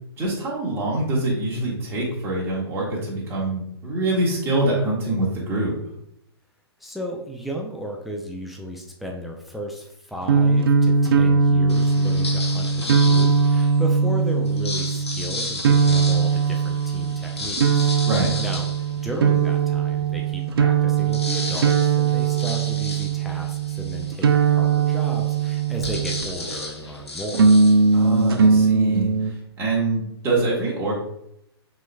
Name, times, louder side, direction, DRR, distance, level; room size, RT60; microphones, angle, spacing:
voice 1, 0.2-5.7 18.1-18.3 27.9-31.0, right 2 dB, 15° right, -5 dB, 1.4 m, -25 dB
voice 2, 6.8-18.1 18.4-18.7 19.0-27.5, equal, ahead, 0 dB, 0.4 m, -34 dB
sound 1, 10.2-26.5 27.3-29.3, right 5 dB, 60° right, 0.5 m, -20 dB
sound 2, 11.7-13.8 14.4-19.6 20.1-20.2 20.4-28.5, left 3 dB, 80° left, 1.0 m, -34 dB
5.9 x 3.3 x 2.3 m, 0.76 s
figure-of-eight pair, 120°, 14 cm